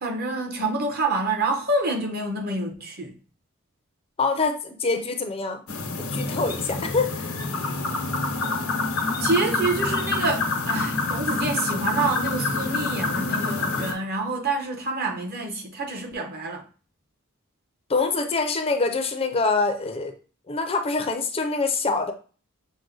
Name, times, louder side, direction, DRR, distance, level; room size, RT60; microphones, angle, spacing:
voice 1, 0.0-3.1 9.2-16.6, right 3 dB, 45° right, 0.9 m, -27 dB
voice 2, 4.2-5.6 6.0-7.1 17.9-20.1 20.5-22.1, left 4 dB, 30° left, 0.5 m, -25 dB
sound 1, 5.7-13.9, left 3 dB, 85° left, 0.9 m, -27 dB
6.1 x 2.1 x 3.8 m
head